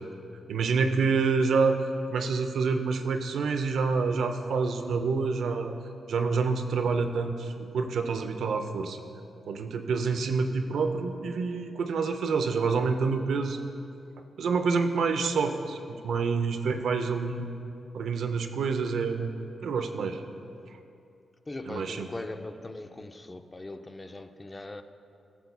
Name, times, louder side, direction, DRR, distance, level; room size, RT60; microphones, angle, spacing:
voice 1, 0.5-1.8 2.1-5.7 6.1-9.0 9.5-13.6 14.4-17.5 17.9-19.3 19.6-20.2 21.7-22.1, right 4 dB, 80° right, 6 dB, 0.5 m, -27 dB
voice 2, 21.5-24.8, left 2 dB, 25° left, 8 dB, 0.4 m, -40 dB
16.5 x 6.8 x 2.2 m, 2.6 s
cardioid pair, 85°, 0 cm